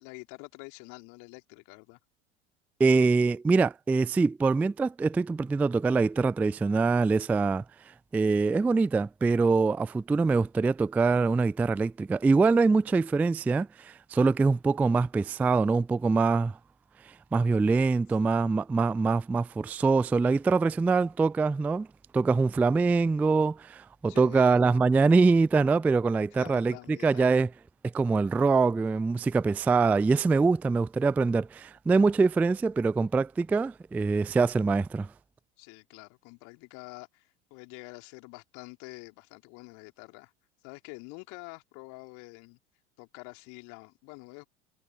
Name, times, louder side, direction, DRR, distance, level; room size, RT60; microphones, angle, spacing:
voice 1, 0.0-2.0 24.1-24.6 26.3-27.4 35.6-40.3 40.6-42.6 43.0-44.5, left 32 dB, 50° left, 3.3 m, -47 dB
voice 2, 2.8-7.6 8.1-16.6 17.3-21.9 22.1-27.5 27.9-35.1, right 4 dB, 5° right, 0.3 m, -24 dB
figure-of-eight pair, 75°, 37 cm